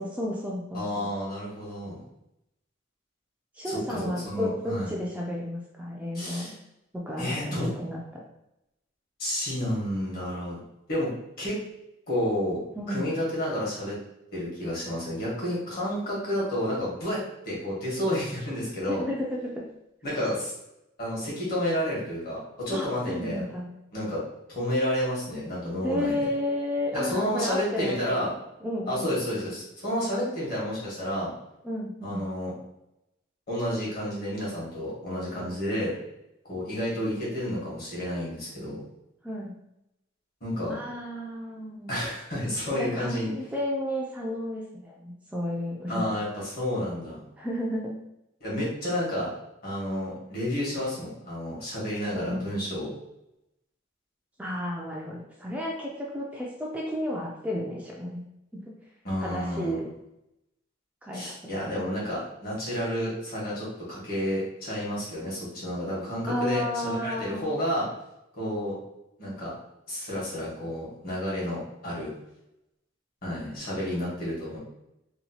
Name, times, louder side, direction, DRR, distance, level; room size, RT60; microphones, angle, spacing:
voice 1, 0.0-1.1 3.5-6.5 7.1-8.0 12.8-13.0 18.9-19.6 20.1-20.2 22.7-23.7 25.8-28.1 28.6-29.1 31.6-32.2 35.4-35.5 39.2-39.6 40.7-42.0 42.8-46.2 47.4-47.9 52.1-52.5 54.4-58.2 58.6-58.7 59.2-59.9 61.0-61.3 61.6-61.7 66.3-67.5 71.4-71.6, left 1 dB, 5° right, -3 dB, 0.3 m, -32 dB
voice 2, 0.7-2.0 3.6-4.9 6.1-6.5 7.2-7.7 9.2-10.6 10.9-11.1 11.4-11.6 12.1-12.6 12.9-13.9 14.3-19.0 20.0-20.5 21.0-23.5 23.9-24.2 24.5-26.3 26.9-28.3 28.9-31.3 32.0-32.5 33.5-36.0 36.5-38.8 40.4-40.7 41.9-43.3 45.9-47.2 48.4-49.3 49.6-52.9 59.0-59.7 61.1-67.9 68.4-68.8 69.2-69.5 69.9-72.1 73.2-74.6, equal, 50° left, -6 dB, 1.3 m, -30 dB
2.9 x 2.2 x 2.8 m, 0.86 s
head